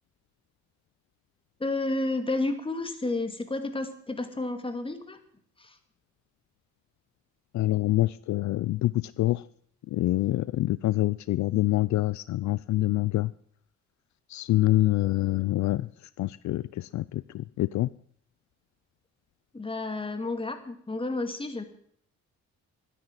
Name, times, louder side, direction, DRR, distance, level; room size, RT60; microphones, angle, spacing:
voice 1, 1.6-5.2 5.6-5.8 19.5-21.6, left 2 dB, 15° left, 7 dB, 2.5 m, -31 dB
voice 2, 7.5-9.5 9.9-13.3 14.3-15.9 16.2-17.9, left 16 dB, 70° left, 18 dB, 0.5 m, -26 dB
12.5 x 10.0 x 9.2 m, 0.64 s
cardioid pair, 90°, 30 cm